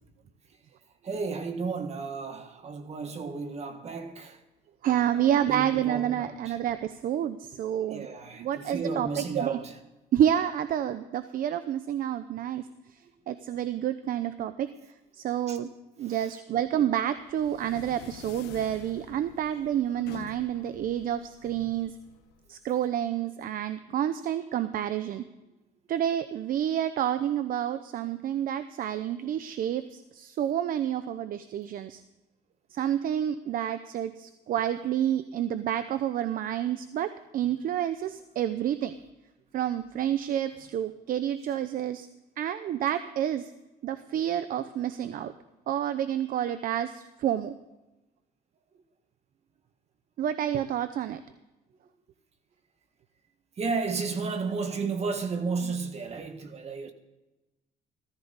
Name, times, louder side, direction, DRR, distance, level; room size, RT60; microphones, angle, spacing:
voice 1, 1.0-4.4 5.0-6.6 7.9-9.8 13.0-13.1 15.5-15.6 16.0-16.3 53.6-56.9, right 4 dB, 40° right, 1.7 m, -33 dB
voice 2, 4.8-8.1 8.4-9.6 10.1-12.6 13.3-14.7 15.2-15.7 16.0-21.9 22.5-25.2 25.9-32.0 32.7-38.9 39.5-42.1 42.4-43.5 43.8-45.3 45.7-47.5 50.2-51.2, right 10 dB, 55° right, 0.7 m, -29 dB
sound 1, 17.1-22.9, left 10 dB, 80° left, 1.1 m, -48 dB
15.5 x 14.5 x 4.0 m
cardioid pair, 110°, 17 cm